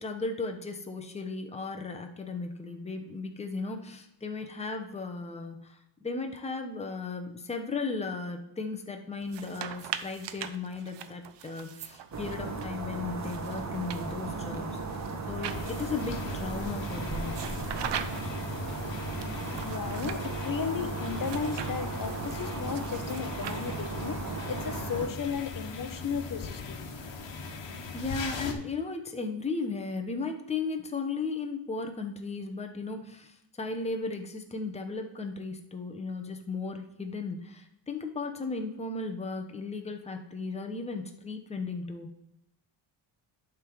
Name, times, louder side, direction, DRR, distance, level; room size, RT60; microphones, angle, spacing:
voice 1, 0.0-14.8 15.3-17.5 27.9-42.1, left 4 dB, 15° left, 4 dB, 0.9 m, -36 dB
sound 1, 9.2-12.7 13.2-16.1 17.3-18.4 19.2-20.3 21.2-24.0, right 9 dB, 65° right, 0.7 m, -41 dB
sound 2, 12.1-25.1, right 3 dB, 35° right, 1.3 m, -36 dB
sound 3, 15.5-28.5, left 4 dB, 65° left, 1.3 m, -40 dB
voice 2, 19.6-26.8, left 7 dB, 45° left, 9 dB, 0.9 m, -35 dB
11.0 x 3.8 x 4.6 m, 0.82 s
cardioid pair, 105°, 47 cm